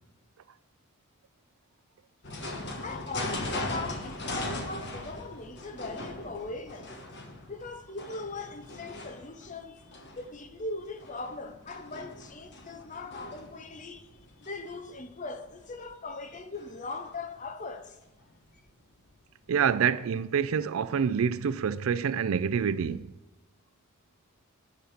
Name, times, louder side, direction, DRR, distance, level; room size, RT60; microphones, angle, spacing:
sound 1, 2.2-17.7 18.1-18.2 18.6-18.7 18.9-19.0 19.7-19.8, left 2 dB, 55° left, 1.3 m, -40 dB
voice 1, 2.8-6.9 7.5-14.0 14.4-18.0, left 3 dB, 35° left, 0.8 m, -40 dB
voice 2, 19.5-23.1, right 7 dB, 75° right, 0.4 m, -27 dB
10.5 x 6.5 x 5.0 m
head